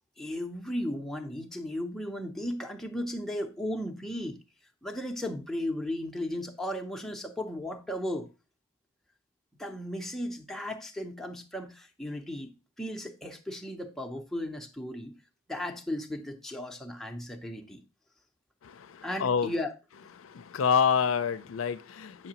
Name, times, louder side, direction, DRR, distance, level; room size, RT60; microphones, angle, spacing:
voice 1, 0.2-4.4 4.8-8.3 9.6-12.5 12.8-15.2 15.5-17.8 19.0-19.7, left 1 dB, ahead, 0.6 m, -35 dB
voice 2, 18.6-19.5 20.2-22.3, left 7 dB, 85° left, 0.4 m, -28 dB
7.3 x 5.8 x 2.9 m
head